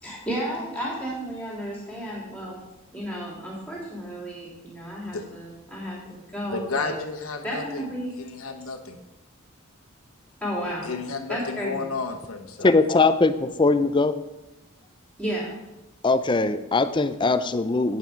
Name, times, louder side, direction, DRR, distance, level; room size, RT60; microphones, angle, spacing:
voice 1, 0.0-2.6 2.9-6.9 7.4-8.1 10.4-10.9 11.3-11.8 15.2-15.5, equal, 5° left, -6 dB, 3.1 m, -32 dB
voice 2, 6.4-7.9 8.2-9.0 10.6-12.7, left 3 dB, 85° left, 4 dB, 1.1 m, -32 dB
voice 3, 12.6-14.1 16.0-18.0, left 3 dB, 25° left, 11 dB, 0.5 m, -21 dB
9.1 x 5.8 x 6.3 m, 0.95 s
head